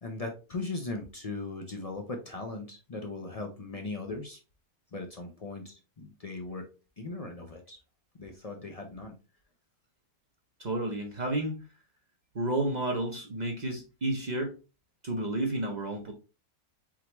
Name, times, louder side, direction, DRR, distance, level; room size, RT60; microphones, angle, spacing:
voice 1, 0.0-4.4 4.9-6.7 7.0-7.8 8.2-9.2, left 3 dB, 60° left, 3 dB, 0.4 m, -38 dB
voice 2, 10.6-11.6 12.3-14.5 15.0-16.1, right 1 dB, 45° right, 2 dB, 0.5 m, -31 dB
4.4 x 3.7 x 3.0 m, 0.32 s
omnidirectional pair, 1.7 m